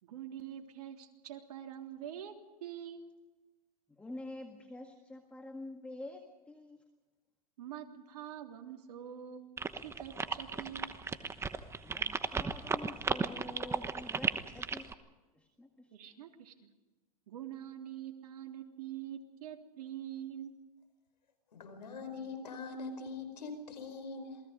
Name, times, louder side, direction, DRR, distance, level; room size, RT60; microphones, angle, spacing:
voice 1, 0.0-2.3 2.6-3.1 7.6-10.9 15.9-16.7 17.3-20.5, right 10 dB, 70° right, 2 dB, 3.4 m, -45 dB
voice 2, 4.0-6.8 11.8-14.9 15.4-15.9, left 2 dB, 5° left, 4 dB, 1.8 m, -47 dB
sound 1, 9.6-14.9, right 5 dB, 10° right, 1.1 m, -34 dB
voice 3, 21.5-24.4, left 4 dB, 90° left, 9 dB, 5.1 m, -42 dB
27.5 x 19.5 x 5.2 m, 1.2 s
hypercardioid pair, 125°, 21 cm